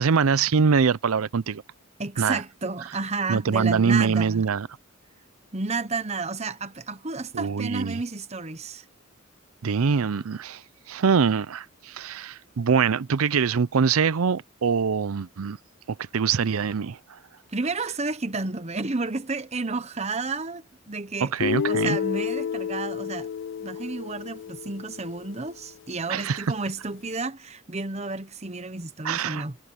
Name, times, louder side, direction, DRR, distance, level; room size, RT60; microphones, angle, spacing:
voice 1, 0.0-1.6 2.2-2.4 3.3-4.7 7.3-8.0 9.6-10.6 10.9-15.6 15.9-17.2 21.2-22.0 26.1-26.4 29.0-29.4, right 6 dB, 85° right, 0.5 m, -24 dB
voice 2, 2.0-4.5 5.5-8.8 17.5-21.3 21.7-23.3 23.6-29.6, right 3 dB, 30° right, 1.0 m, -31 dB
Guitar, 21.4-25.4, left 7 dB, 60° left, 0.3 m, -30 dB
head